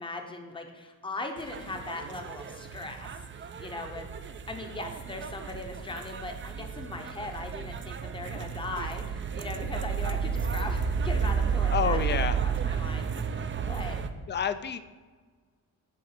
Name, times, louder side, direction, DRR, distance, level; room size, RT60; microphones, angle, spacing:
voice 1, 0.0-3.1 3.4-4.1 4.5-14.0, left 2 dB, 15° left, 4 dB, 0.7 m, -39 dB
sound 1, 1.4-14.1, right 6 dB, 35° right, 0.4 m, -32 dB
voice 2, 11.7-12.4 14.3-14.8, left 7 dB, 30° left, 12 dB, 0.4 m, -28 dB
8.5 x 3.1 x 5.7 m, 1.4 s
cardioid pair, 105°, 38 cm